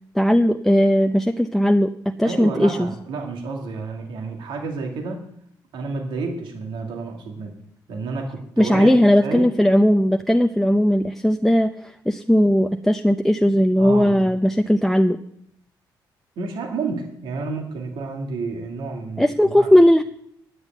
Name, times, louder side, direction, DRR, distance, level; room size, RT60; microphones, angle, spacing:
voice 1, 0.1-1.9 2.2-2.9 8.6-15.2 19.2-20.0, equal, 5° left, 7 dB, 0.6 m, -17 dB
voice 2, 2.2-5.3 5.7-7.6 7.9-9.6 13.8-14.3 16.4-19.7, right 3 dB, 80° right, 3 dB, 2.1 m, -30 dB
9.9 x 7.4 x 9.1 m, 0.70 s
cardioid pair, 80°, 8 cm